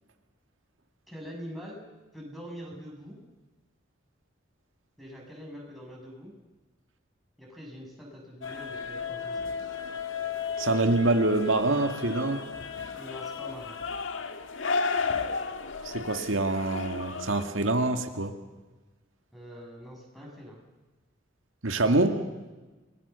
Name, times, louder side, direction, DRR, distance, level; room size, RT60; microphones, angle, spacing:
voice 1, 1.1-1.8 2.1-3.2 5.0-6.3 7.4-9.7 12.9-13.8 19.3-20.6, equal, ahead, -3 dB, 7.0 m, -44 dB
sound 1, 8.4-17.4, left 5 dB, 80° left, 1.7 m, -34 dB
voice 2, 10.6-12.4 15.8-18.4 21.6-22.2, right 2 dB, 90° right, 5 dB, 2.0 m, -25 dB
29.5 x 20.0 x 6.9 m, 1.2 s
head